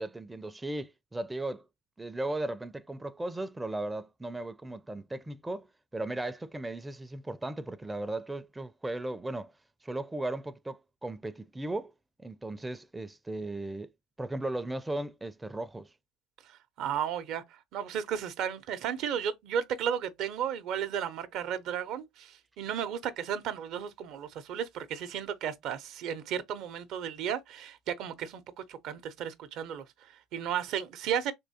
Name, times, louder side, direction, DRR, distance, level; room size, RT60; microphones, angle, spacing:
voice 1, 0.0-1.7 2.0-5.7 5.9-9.5 9.8-11.9 12.2-13.9 14.2-15.9, right 2 dB, 15° right, 0.4 m, -36 dB
voice 2, 16.5-17.4 17.7-31.3, right 8 dB, 65° right, 0.6 m, -34 dB
3.5 x 3.0 x 2.7 m
supercardioid pair, 80°, 0 cm